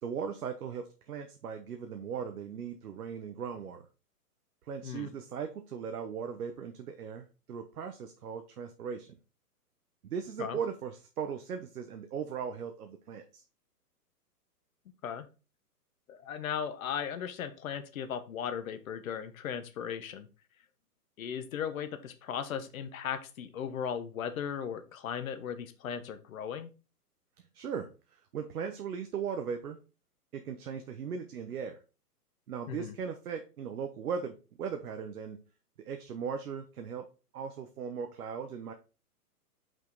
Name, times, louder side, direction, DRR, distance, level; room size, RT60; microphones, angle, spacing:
voice 1, 0.0-3.8 4.7-9.1 10.0-13.4 27.5-29.8 30.3-31.8 32.5-35.4 35.8-37.1 37.3-38.7, right 7 dB, 65° right, 6 dB, 1.1 m, -38 dB
voice 2, 16.1-20.3 21.2-26.7 32.7-32.9, left 8 dB, 60° left, 10 dB, 1.2 m, -37 dB
5.7 x 5.2 x 3.9 m, 0.32 s
hypercardioid pair, 130°, 47 cm